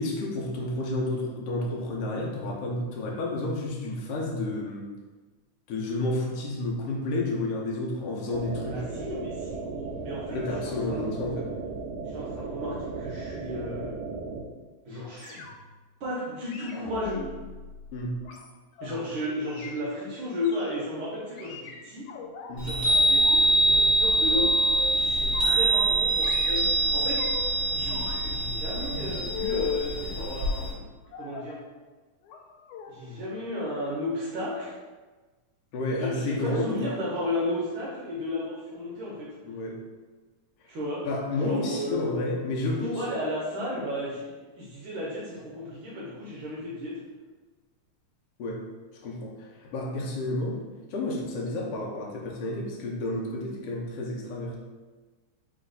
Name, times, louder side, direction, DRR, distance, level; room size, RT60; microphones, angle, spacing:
voice 1, 0.0-4.9 5.7-8.9 10.3-11.5 17.9-18.2 22.5-22.8 35.7-36.9 39.4-39.7 41.0-43.1 48.4-48.7 49.0-54.6, left 2 dB, 70° left, -1 dB, 1.6 m, -31 dB
sound 1, 8.3-14.4, right 4 dB, 90° right, 1.3 m, -36 dB
voice 2, 8.7-11.1 12.1-14.0 14.8-15.4 16.0-17.3 18.8-22.1 22.6-24.6 24.9-27.3 27.7-30.9 31.2-31.6 32.9-34.8 36.0-39.3 40.7-41.1 41.4-42.1 42.9-47.0, left 1 dB, 65° right, -6 dB, 1.3 m, -34 dB
sound 2, 15.2-15.8 16.5-19.0 19.4-19.8 20.4-20.7 21.4-22.5 22.9-23.4 23.7-24.9 25.3-26.0 26.2-27.5 27.9-29.9 31.1-31.6 32.2-32.4 32.7-32.9 33.2-33.4 33.7-33.8, left 6 dB, 90° left, 2.1 m, -39 dB
Chime, 22.6-30.7, right 1 dB, 45° right, 0.7 m, -24 dB
4.3 x 3.1 x 3.8 m, 1.3 s
omnidirectional pair, 3.4 m